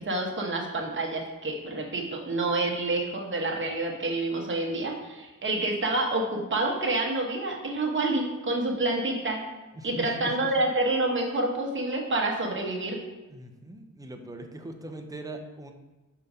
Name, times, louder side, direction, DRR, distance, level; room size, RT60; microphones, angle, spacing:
voice 1, 0.0-9.4 9.8-13.0, right 2 dB, 35° right, 0 dB, 1.2 m, -28 dB
voice 2, 9.7-10.5 13.3-15.7, right 1 dB, 10° right, 4 dB, 0.6 m, -41 dB
5.0 x 4.4 x 5.4 m, 1.1 s
wide cardioid pair, 105°, 32 cm